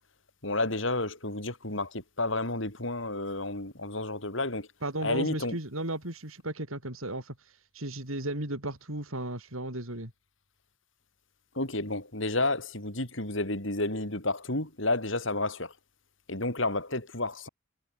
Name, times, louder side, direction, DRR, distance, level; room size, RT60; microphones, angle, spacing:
voice 1, 0.4-4.7 5.0-5.6 11.5-15.7 16.3-17.5, left 2 dB, 60° left, 6.3 m, -31 dB
voice 2, 4.8-7.3 7.7-10.1, right 1 dB, 80° right, 6.2 m, -34 dB
head